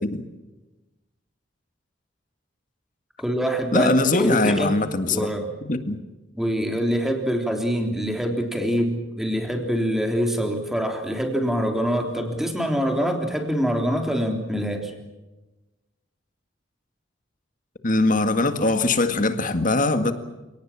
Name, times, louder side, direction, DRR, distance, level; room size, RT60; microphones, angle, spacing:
voice 1, 3.2-4.8 5.1-5.5 6.4-14.9, equal, ahead, 3 dB, 3.5 m, -25 dB
voice 2, 3.7-5.3 5.6-6.0 17.8-20.1, left 2 dB, 45° left, 9 dB, 2.0 m, -21 dB
29.5 x 18.5 x 7.4 m, 1.1 s
head